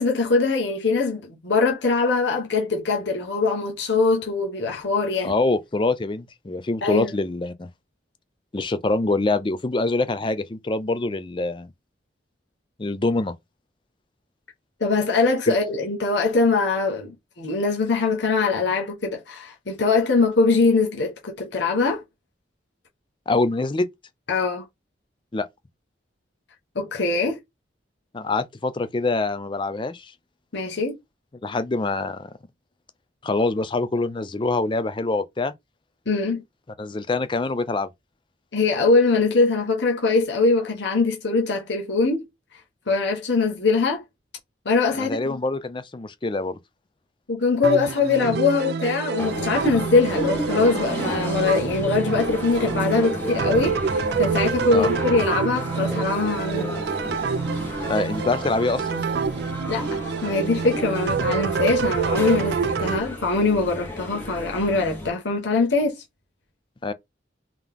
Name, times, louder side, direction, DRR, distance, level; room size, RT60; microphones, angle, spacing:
voice 1, 0.0-5.3 6.8-7.1 14.8-22.0 24.3-24.6 26.7-27.4 30.5-31.0 36.1-36.4 38.5-42.3 42.9-44.0 44.6-45.4 47.3-56.7 59.7-66.0, left 3 dB, 75° left, 1.1 m, -22 dB
voice 2, 5.2-7.7 8.5-11.7 12.8-13.3 15.5-15.6 23.3-23.9 25.3-25.5 28.1-30.1 31.4-32.3 33.2-35.5 36.8-37.9 44.9-46.5 54.7-54.9 57.9-59.1 66.8-66.9, left 3 dB, 25° left, 0.5 m, -25 dB
sound 1, 47.6-63.0, right 5 dB, 60° right, 0.4 m, -27 dB
sound 2, 49.2-65.1, equal, 10° left, 1.6 m, -33 dB
3.9 x 2.9 x 3.5 m
head